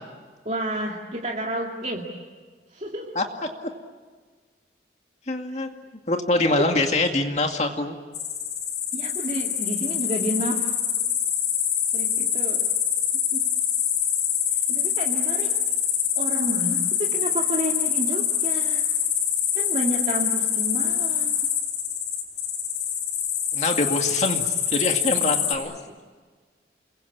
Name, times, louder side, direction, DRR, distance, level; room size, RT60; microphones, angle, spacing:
voice 1, 0.5-2.1 2.7-3.2 5.5-5.6 6.5-6.6 8.9-10.7 11.9-12.6 13.3-13.4 14.7-15.6 16.2-18.9 19.6-21.5 25.2-25.3 25.6-25.7, right 1 dB, 40° right, -2 dB, 2.4 m, -30 dB
voice 2, 5.3-5.7 6.1-8.0 23.5-25.7, left 2 dB, 40° left, 3 dB, 2.2 m, -24 dB
sound 1, 8.1-25.5, left 9 dB, 75° left, 5.8 m, -25 dB
29.5 x 22.5 x 8.6 m, 1.5 s
head